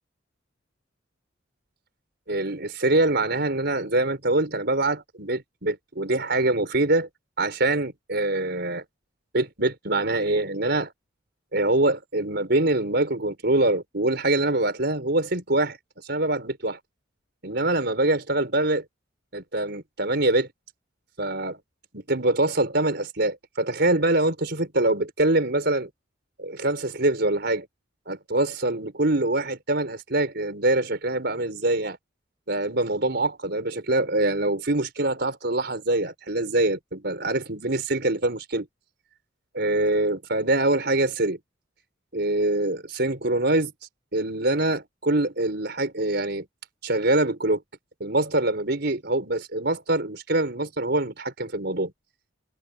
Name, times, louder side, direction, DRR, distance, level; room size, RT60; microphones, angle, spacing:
voice 1, 2.3-7.1 7.4-8.8 9.3-10.9 11.5-15.8 16.0-16.8 17.4-18.8 19.3-20.5 21.2-21.6 21.9-25.9 26.4-27.7 28.1-32.0 32.5-38.6 39.5-41.4 42.1-43.7 44.1-46.4 46.8-47.6 48.0-51.9, right 2 dB, 55° right, 5.0 m, -24 dB
head